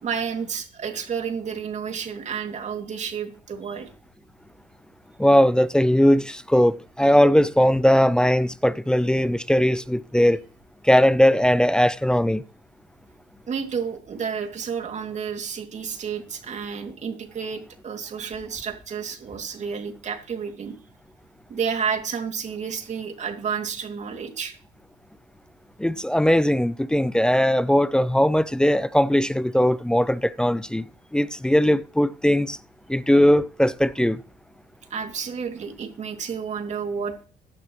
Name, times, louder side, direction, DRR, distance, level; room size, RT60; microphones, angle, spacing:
voice 1, 0.0-3.9 13.5-20.7 21.5-24.6 34.9-37.1, right 6 dB, 45° right, 2.5 m, -31 dB
voice 2, 5.2-10.4 10.8-12.4 25.8-30.8 31.1-32.6 32.9-34.2, equal, 5° left, 0.5 m, -19 dB
15.5 x 11.5 x 3.1 m
cardioid pair, 110°, 17 cm